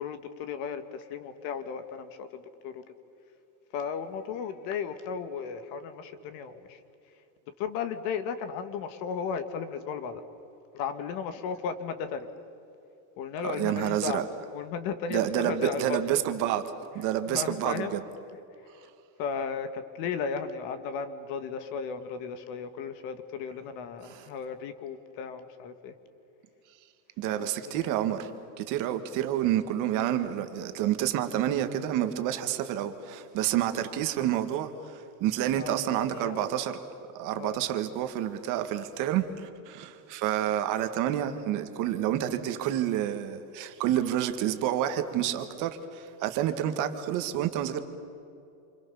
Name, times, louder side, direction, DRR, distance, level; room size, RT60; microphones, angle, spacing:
voice 1, 0.0-2.8 3.7-6.8 7.6-10.2 10.7-12.3 13.2-14.2 14.5-16.0 16.9-17.9 19.2-25.9 27.3-28.0 35.5-36.6 37.3-37.6, left 6 dB, 50° left, 2.0 m, -35 dB
voice 2, 13.4-14.3 15.1-18.0 24.0-24.3 27.2-28.3 28.6-36.8 37.1-47.8, right 11 dB, 45° right, 1.7 m, -29 dB
28.0 x 26.0 x 7.1 m
cardioid pair, 175°, 44 cm